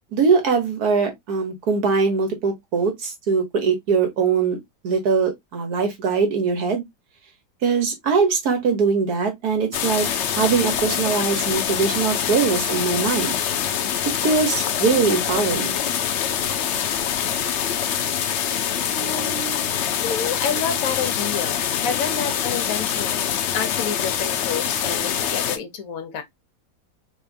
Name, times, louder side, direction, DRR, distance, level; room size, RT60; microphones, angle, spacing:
voice 1, 0.1-4.6 4.8-6.8 7.6-13.3 14.2-15.8, right 5 dB, 65° right, 1.6 m, -21 dB
sound 1, 9.7-25.6, left 9 dB, 90° left, 0.6 m, -24 dB
voice 2, 18.9-19.8 20.0-26.2, left 6 dB, 60° left, 1.1 m, -29 dB
3.5 x 3.3 x 2.4 m
omnidirectional pair, 1.8 m